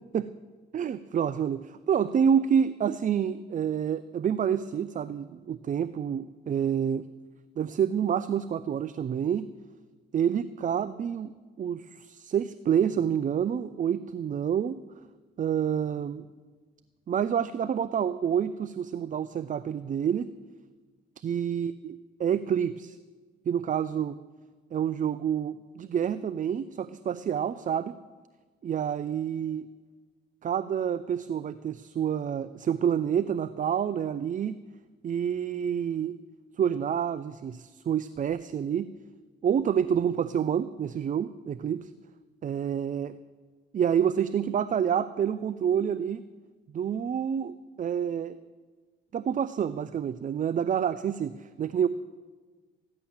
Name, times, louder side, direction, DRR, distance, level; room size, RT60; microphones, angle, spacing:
voice 1, 0.7-7.1 7.6-9.4 10.1-11.3 11.6-14.8 15.4-16.3 17.1-20.3 21.2-23.0 23.5-24.1 24.7-28.0 28.6-29.7 30.4-34.5 35.0-36.2 36.6-38.9 39.4-41.9 42.4-43.1 43.7-46.2 46.7-48.4 49.1-51.9, right 8 dB, 40° right, 15 dB, 0.5 m, -28 dB
14.5 x 10.5 x 7.2 m, 1.4 s
cardioid pair, 90°, 20 cm